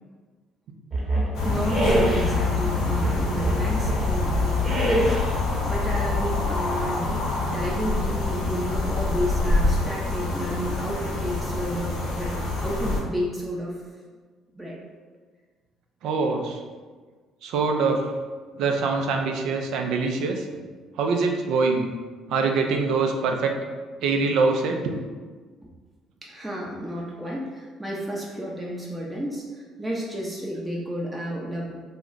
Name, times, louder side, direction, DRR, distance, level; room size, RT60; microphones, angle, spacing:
sound 1, 0.9-2.4 2.9-4.1 4.6-5.4, right 1 dB, 35° right, 0.9 m, -25 dB
sound 2, 1.3-13.0, left 3 dB, 75° left, 0.6 m, -26 dB
voice 1, 1.4-5.2 5.6-13.7 14.6-14.8 26.2-29.4 29.8-31.8, equal, 10° right, -4 dB, 0.6 m, -31 dB
voice 2, 16.0-16.6 17.4-18.0 18.6-20.5 21.0-21.9 22.3-23.5 24.0-24.8, right 4 dB, 70° right, 3 dB, 0.4 m, -24 dB
2.3 x 2.1 x 3.7 m, 1.4 s
hypercardioid pair, 60°, 0 cm